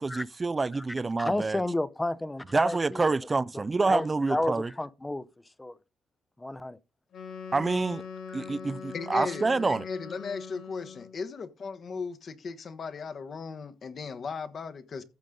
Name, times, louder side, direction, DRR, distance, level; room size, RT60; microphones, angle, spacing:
voice 1, 0.0-1.6 2.5-4.7 7.5-8.1 8.3-9.8, right 3 dB, 25° right, 0.4 m, -27 dB
voice 2, 1.2-3.1 3.5-5.2 5.6-5.8 6.4-6.8 8.3-8.5, left 1 dB, 15° left, 0.7 m, -32 dB
Wind instrument woodwind instrument, 7.1-11.2, left 6 dB, 65° left, 5.3 m, -42 dB
voice 3, 8.9-15.0, left 5 dB, 50° left, 1.3 m, -37 dB
14.5 x 5.2 x 3.8 m
cardioid pair, 90°, 0 cm